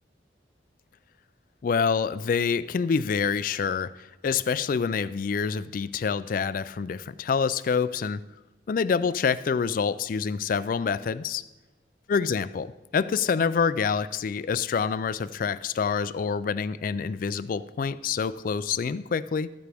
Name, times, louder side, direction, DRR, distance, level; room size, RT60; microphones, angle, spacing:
voice 1, 1.6-8.2 8.7-11.4 12.1-19.5, left 6 dB, 50° left, 16 dB, 0.3 m, -27 dB
13.0 x 9.1 x 3.5 m, 1.1 s
head